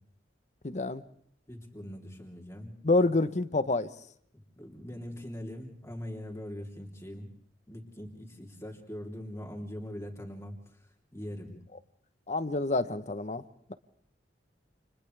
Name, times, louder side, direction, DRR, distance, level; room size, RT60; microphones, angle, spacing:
voice 1, 0.6-1.0 2.8-3.9 12.3-13.4, left 2 dB, 40° left, 0.9 m, -27 dB
voice 2, 1.5-2.8 4.6-7.3 7.7-10.6 11.1-11.6, equal, 15° left, 3.4 m, -41 dB
30.0 x 29.0 x 3.4 m
head